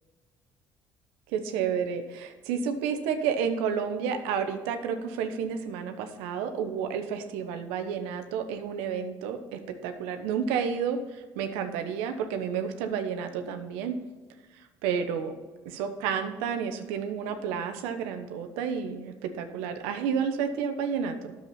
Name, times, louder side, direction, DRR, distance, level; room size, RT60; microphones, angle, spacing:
voice 1, 1.3-11.0 11.4-14.0 14.8-15.3 15.6-21.3, right 7 dB, 85° right, 7 dB, 1.0 m, -30 dB
9.9 x 7.5 x 4.3 m, 1.3 s
supercardioid pair, 75°, 10 cm